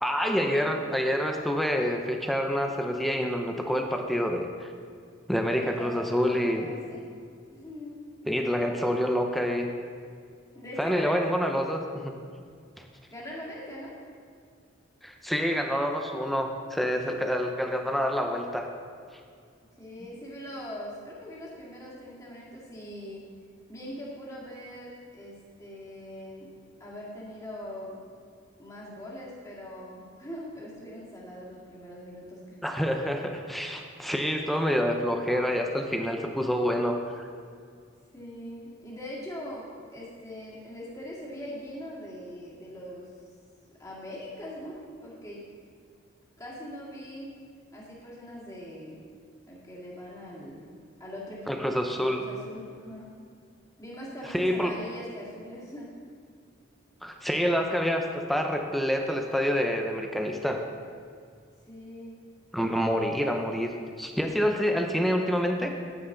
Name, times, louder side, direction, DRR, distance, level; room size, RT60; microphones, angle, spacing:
voice 1, 0.0-4.7 5.3-6.7 8.3-9.7 10.8-12.1 12.8-12.9 15.0-18.7 32.6-37.3 51.5-52.2 54.3-54.7 57.0-58.0 58.3-60.6 62.5-63.7 64.0-65.7, equal, ahead, 3 dB, 0.5 m, -27 dB
voice 2, 5.4-7.1 7.5-8.0 10.5-11.2 13.1-14.0 16.8-17.2 19.8-23.3 23.7-26.5 26.8-28.0 28.6-32.6 38.1-43.1 43.8-45.5 46.4-47.3 47.7-49.0 49.5-53.1 53.8-55.9 61.7-62.1, left 1 dB, 15° left, -6 dB, 2.1 m, -41 dB
10.0 x 9.8 x 3.8 m, 2.2 s
head